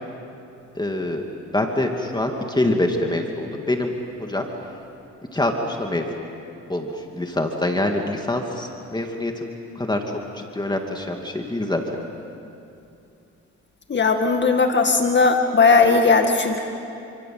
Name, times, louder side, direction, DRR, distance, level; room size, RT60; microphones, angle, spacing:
voice 1, 0.7-1.3 1.5-3.9 4.2-4.5 5.3-6.1 6.7-9.5 9.7-10.0 10.3-11.8, left 1 dB, 15° left, 3 dB, 2.5 m, -25 dB
voice 2, 13.9-16.6, left 4 dB, 35° left, 4 dB, 2.1 m, -17 dB
29.0 x 25.0 x 8.0 m, 2.7 s
cardioid pair, 90°, 30 cm